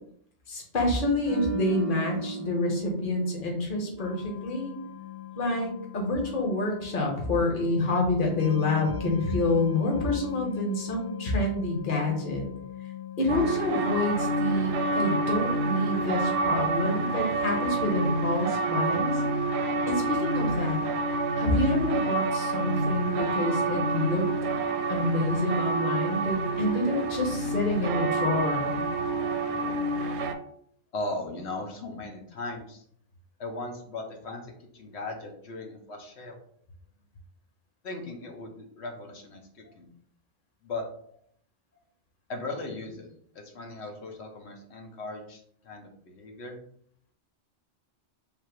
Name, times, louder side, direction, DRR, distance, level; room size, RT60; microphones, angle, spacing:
voice 1, 0.5-4.7 5.3-12.5 13.2-19.2 19.9-20.8 21.1-24.3 24.9-28.8, left 2 dB, 50° left, 1 dB, 1.2 m, -28 dB
sound 1, 1.2-4.5 4.8-5.0, right 3 dB, 35° right, 0.9 m, -36 dB
sound 2, 4.0-17.1, left 12 dB, 5° right, 0.7 m, -41 dB
sound 3, 13.3-30.3, right 2 dB, 80° right, 0.8 m, -28 dB
voice 2, 30.9-32.8 33.4-36.4 37.8-39.9 40.6-40.8 42.3-43.1 43.3-46.6, left 2 dB, 75° left, 2 dB, 1.2 m, -38 dB
3.6 x 2.8 x 4.6 m, 0.64 s
omnidirectional pair, 1.1 m